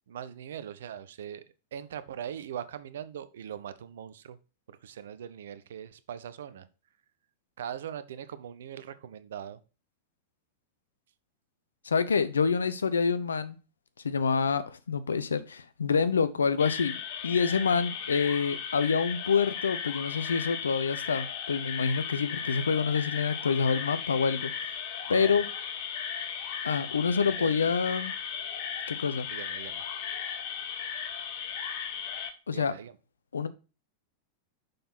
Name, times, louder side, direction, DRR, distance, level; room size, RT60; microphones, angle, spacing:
voice 1, 0.1-1.4 1.7-4.4 4.7-6.7 7.6-9.6 25.1-25.4 27.2-27.7 29.3-29.8 32.5-32.9, right 9 dB, 60° right, 0.7 m, -41 dB
voice 2, 11.8-13.6 14.0-24.5 25.1-25.4 26.6-28.1 28.9-29.3 32.5-32.7 33.3-33.5, left 5 dB, 70° left, 0.7 m, -27 dB
sound 1, 16.6-32.3, left 7 dB, 50° left, 1.2 m, -36 dB
6.7 x 5.6 x 4.1 m
figure-of-eight pair, 90°, 0 cm